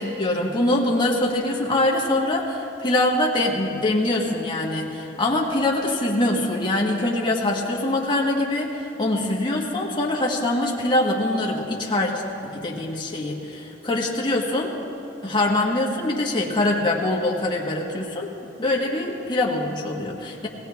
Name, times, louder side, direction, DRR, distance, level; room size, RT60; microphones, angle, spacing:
voice 1, 0.0-14.7 15.2-18.3 18.6-20.5, left 1 dB, 25° left, -2 dB, 1.5 m, -23 dB
18.5 x 17.0 x 3.5 m, 3.0 s
head